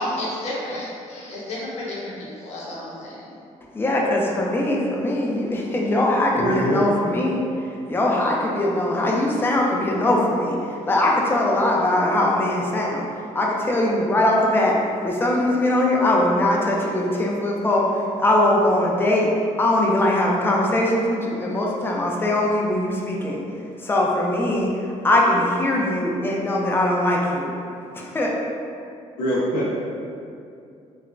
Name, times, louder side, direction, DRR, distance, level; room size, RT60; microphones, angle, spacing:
voice 1, 0.0-3.3, left 1 dB, 55° left, -6 dB, 0.8 m, -31 dB
voice 2, 3.7-13.1 13.3-23.4 23.8-27.5 27.9-28.4, left 1 dB, 15° left, -2 dB, 0.4 m, -21 dB
voice 3, 6.4-6.8 29.2-29.7, equal, 85° left, -6 dB, 0.5 m, -23 dB
3.0 x 2.1 x 2.4 m, 2.5 s
cardioid pair, 120°, 13 cm